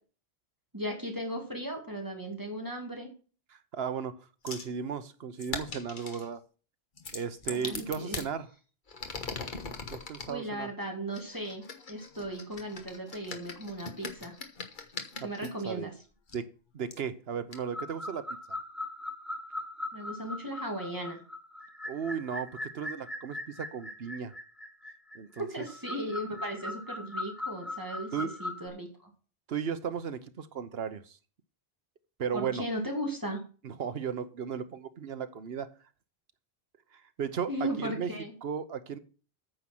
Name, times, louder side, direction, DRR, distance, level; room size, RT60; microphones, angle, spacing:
voice 1, 0.7-3.1 7.5-8.2 10.3-14.4 15.2-15.9 19.9-21.2 25.4-29.1 32.3-33.5 37.5-38.3, right 1 dB, 20° right, 1 dB, 2.3 m, -37 dB
voice 2, 3.5-6.4 7.1-8.5 9.9-10.7 15.4-15.9 16.3-16.5 16.7-18.6 21.9-24.3 25.1-25.7 28.1-28.3 29.5-31.2 32.2-32.6 33.6-35.7 36.9-38.1 38.4-39.0, right 7 dB, 70° right, 11 dB, 1.1 m, -35 dB
sound 1, 4.5-4.7 5.4-6.3 7.0-8.3 8.9-10.3 11.1-15.5 16.3-16.4 16.9-17.0 17.5-17.6, left 4 dB, 50° left, 1.4 m, -40 dB
sound 2, 17.5-28.7, left 2 dB, ahead, 0.8 m, -40 dB
9.2 x 6.3 x 6.0 m, 0.37 s
omnidirectional pair, 1.1 m